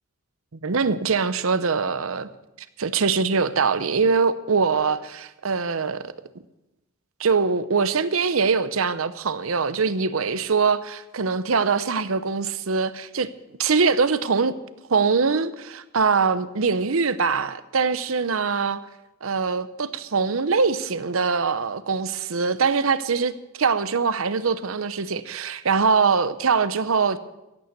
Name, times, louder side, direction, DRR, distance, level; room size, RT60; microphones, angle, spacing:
voice 1, 0.6-2.3 2.8-6.1 7.2-13.3 13.6-14.6 14.9-18.8 19.2-27.2, right 5 dB, 85° right, 0.8 m, -23 dB
15.0 x 9.6 x 6.7 m
head